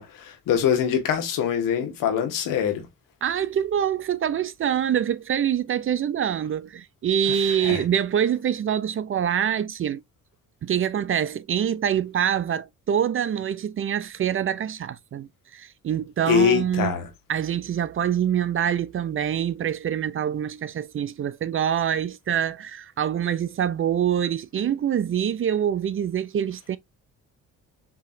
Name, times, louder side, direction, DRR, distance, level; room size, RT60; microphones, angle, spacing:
voice 1, 0.0-2.8 7.3-7.8 16.3-17.1, left 8 dB, 75° left, 1.5 m, -24 dB
voice 2, 3.2-10.0 10.6-16.9 17.3-26.8, right 9 dB, 40° right, 0.5 m, -25 dB
6.2 x 2.8 x 2.6 m
supercardioid pair, 70°, 33 cm